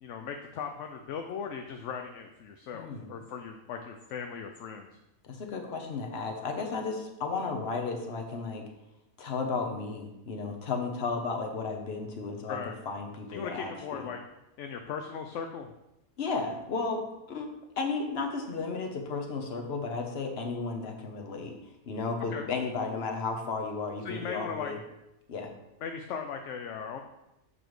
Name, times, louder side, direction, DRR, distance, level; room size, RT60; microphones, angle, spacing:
voice 1, 0.0-4.9 12.5-12.8 13.3-14.2 14.6-15.7 22.3-22.5 24.0-24.7 25.8-27.0, left 6 dB, 65° left, 5 dB, 0.8 m, -38 dB
voice 2, 2.7-3.1 5.2-8.6 9.2-12.6 12.9-14.1 16.2-17.0 17.3-17.5 17.8-21.6 21.9-24.8 25.3-25.5, left 4 dB, 50° left, 3 dB, 1.1 m, -34 dB
6.9 x 6.1 x 3.1 m, 0.90 s
omnidirectional pair, 1.5 m